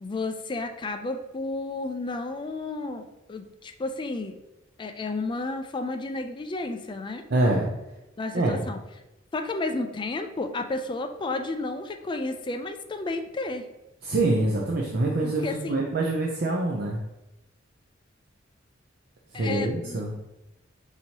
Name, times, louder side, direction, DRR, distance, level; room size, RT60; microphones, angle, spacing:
voice 1, 0.0-4.4 4.8-7.2 8.2-8.8 9.3-13.7 15.2-15.8 19.3-20.1, left 2 dB, 25° left, 6 dB, 0.3 m, -32 dB
voice 2, 7.3-7.7 8.3-8.6 14.0-17.0 19.3-20.1, right 2 dB, 55° right, -2 dB, 0.6 m, -25 dB
6.0 x 2.7 x 2.8 m, 0.97 s
head